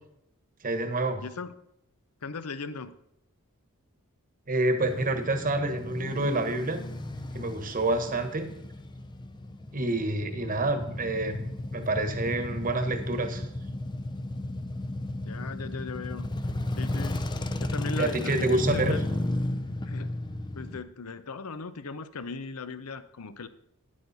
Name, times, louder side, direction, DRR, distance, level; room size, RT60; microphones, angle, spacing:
voice 1, 0.6-1.2 4.5-6.8 7.3-8.5 9.7-13.4 18.0-19.0, right 2 dB, 40° right, 8 dB, 1.2 m, -28 dB
voice 2, 1.2-1.6 2.2-3.0 8.1-8.3 15.2-16.3 16.8-17.2 17.6-19.0 19.9-20.1 20.5-23.5, left 4 dB, 75° left, 13 dB, 0.7 m, -38 dB
Male speech man speaking / Motorcycle / Idling, 4.8-20.8, left 1 dB, 20° left, 0.5 m, -34 dB
9.7 x 8.5 x 4.1 m, 0.81 s
head